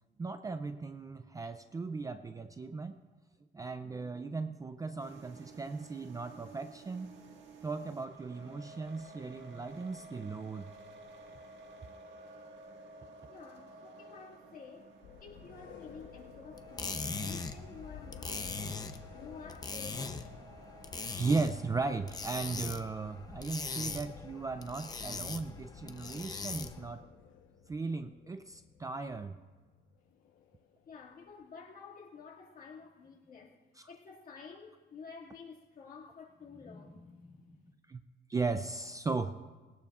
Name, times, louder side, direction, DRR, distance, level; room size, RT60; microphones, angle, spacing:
voice 1, 0.2-3.0 3.5-7.1 7.6-10.7 21.1-27.0 27.7-29.4 33.8-33.9 37.9-38.0 38.3-39.4, right 4 dB, 15° right, 9 dB, 0.4 m, -37 dB
sound 1, 5.0-21.2, right 2 dB, 65° right, 1.7 m, -53 dB
voice 2, 13.3-20.5 30.9-33.6 33.9-37.7, left 5 dB, 45° left, -2 dB, 2.1 m, -51 dB
sound 2, 15.0-31.5, left 8 dB, 75° left, 1.0 m, -55 dB
sound 3, 16.6-26.9, left 4 dB, 20° left, 0.6 m, -41 dB
21.0 x 19.0 x 2.4 m, 1.3 s
cardioid pair, 170°, 20 cm